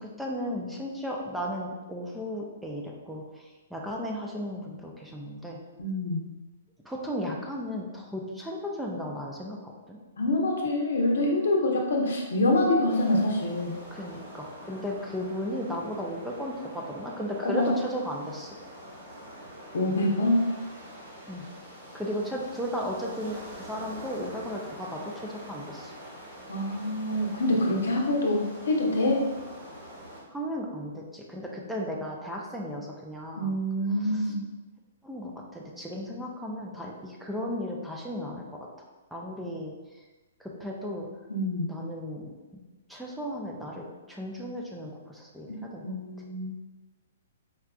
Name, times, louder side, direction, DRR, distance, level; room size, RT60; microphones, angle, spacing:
voice 1, 0.0-5.6 6.8-10.0 13.9-18.6 21.3-21.4 21.9-25.9 30.3-33.6 33.9-34.4 35.0-38.7 39.1-40.0 40.4-41.1 41.7-42.6 42.9-45.9, equal, ahead, -2 dB, 0.4 m, -35 dB
voice 2, 5.8-6.3 10.2-13.7 17.4-17.7 19.7-20.4 26.5-29.2 33.4-34.4 41.3-41.7 45.8-46.5, left 1 dB, 70° left, 0 dB, 0.6 m, -26 dB
sound 1, 12.9-30.2, equal, 55° right, 1.4 m, -45 dB
4.5 x 2.3 x 2.3 m, 1.2 s
hypercardioid pair, 125°, 0 cm